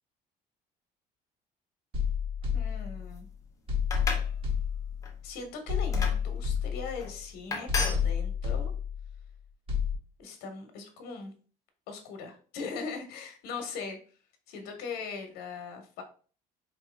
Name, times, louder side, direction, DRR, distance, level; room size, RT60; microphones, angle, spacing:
sound 1, 1.9-3.2 3.7-5.2 5.7-7.2 7.7-9.2 9.7-9.9, left 7 dB, 35° right, 1.2 m, -30 dB
voice 1, 2.5-3.3 5.2-8.7 10.2-11.3 11.9-14.0 14.5-16.0, left 5 dB, 90° left, 5 dB, 1.2 m, -40 dB
sound 2, 3.8-4.3 4.8-5.1 5.9-6.2 7.0-7.1 7.5-8.0, left 3 dB, 20° left, 0.7 m, -32 dB
4.3 x 2.8 x 3.3 m, 0.39 s
cardioid pair, 170°, 16 cm